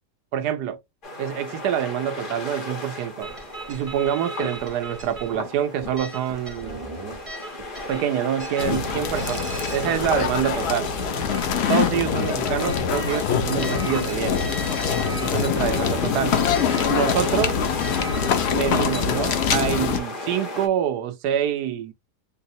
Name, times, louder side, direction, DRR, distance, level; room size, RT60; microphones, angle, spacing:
voice 1, 0.3-0.8 1.2-3.3 3.7-6.8 7.9-10.9 11.7-14.4 15.2-16.4 16.9-17.6 18.5-21.9, right 10 dB, 75° right, 1.2 m, -26 dB
sound 1, 1.0-20.7, left 1 dB, 40° left, 0.9 m, -35 dB
sound 2, 3.2-18.5, right 2 dB, 25° right, 0.7 m, -37 dB
sound 3, 8.6-20.0, left 8 dB, 85° left, 0.5 m, -24 dB
4.7 x 2.0 x 2.7 m
omnidirectional pair, 1.8 m